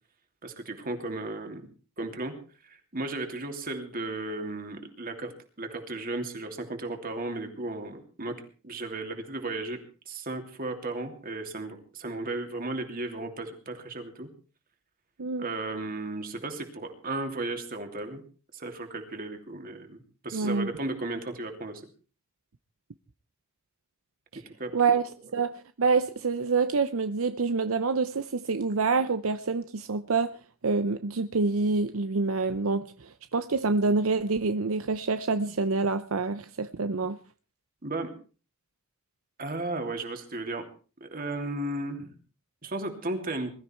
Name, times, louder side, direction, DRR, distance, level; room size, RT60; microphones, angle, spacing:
voice 1, 0.4-1.6 2.0-2.3 2.6-5.3 5.6-8.3 8.6-14.3 15.4-18.2 18.5-21.8 24.6-25.1 37.8-38.1 39.4-40.6 41.0-42.2 42.6-43.5, right 2 dB, 40° right, 3.0 m, -35 dB
voice 2, 20.3-20.7 24.3-24.4 24.7-25.0 25.3-30.3 30.6-37.2, right 4 dB, 75° right, 0.7 m, -27 dB
21.5 x 13.5 x 4.5 m
head